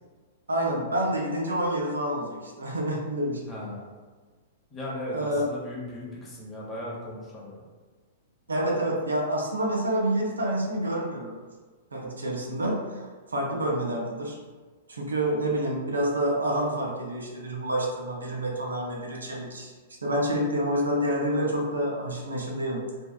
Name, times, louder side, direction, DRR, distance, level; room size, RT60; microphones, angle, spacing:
voice 1, 0.5-3.5 5.1-5.4 8.5-11.5 11.9-14.4 14.9-19.7 20.0-22.9, right 1 dB, 85° right, -1 dB, 0.5 m, -28 dB
voice 2, 3.5-3.9 4.7-7.6, left 1 dB, 20° left, -4 dB, 0.8 m, -37 dB
2.7 x 2.2 x 2.2 m, 1.4 s
hypercardioid pair, 110°, 0 cm